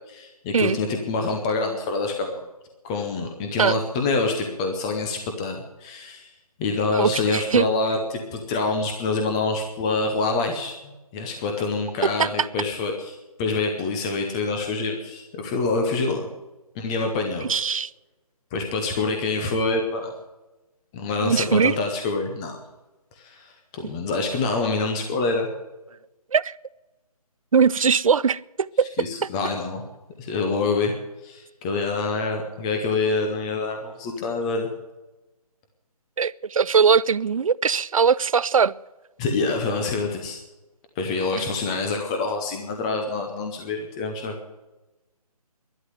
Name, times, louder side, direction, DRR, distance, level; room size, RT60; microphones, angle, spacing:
voice 1, 0.1-2.4 2.8-6.3 6.6-16.3 16.7-17.5 18.5-20.1 20.9-22.6 23.1-25.5 29.0-29.8 30.2-30.9 31.2-34.7 39.2-40.4 41.0-44.3, left 3 dB, 10° left, 0.6 m, -26 dB
voice 2, 6.9-7.7 12.0-12.5 17.5-17.9 21.2-21.8 26.3-26.6 27.5-28.9 36.2-38.7 41.4-41.5, right 6 dB, 60° right, 0.5 m, -21 dB
11.5 x 11.0 x 9.6 m
figure-of-eight pair, 165°, 20 cm